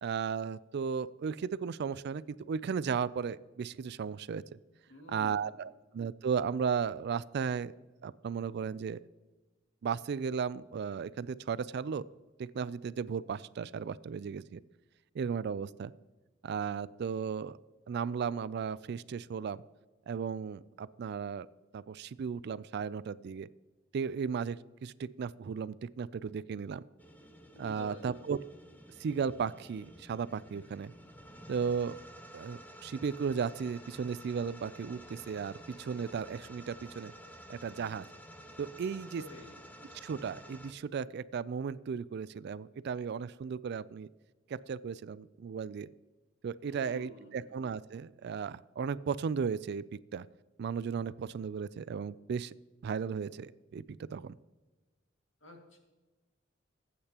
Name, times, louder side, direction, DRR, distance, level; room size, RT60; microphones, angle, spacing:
voice 1, 0.0-4.6 5.1-7.7 8.0-9.0 9.8-12.0 12.4-14.6 15.1-15.9 16.4-17.6 17.9-19.6 20.1-21.5 21.7-23.5 23.9-26.8 27.6-28.4 29.0-30.9 31.5-32.0 32.3-37.1 37.5-38.0 38.6-39.2 40.0-44.1 44.5-45.9 46.4-50.3 50.6-52.5 52.8-54.4, right 6 dB, 60° right, 18 dB, 0.3 m, -35 dB
voice 2, 4.9-5.5 27.5-28.2 39.0-39.6 46.6-47.6 55.4-55.8, left 1 dB, 75° left, 1 dB, 2.2 m, -50 dB
sound 1, 27.0-40.7, equal, 10° left, 0.9 m, -52 dB
20.0 x 8.5 x 2.9 m, 1.2 s
head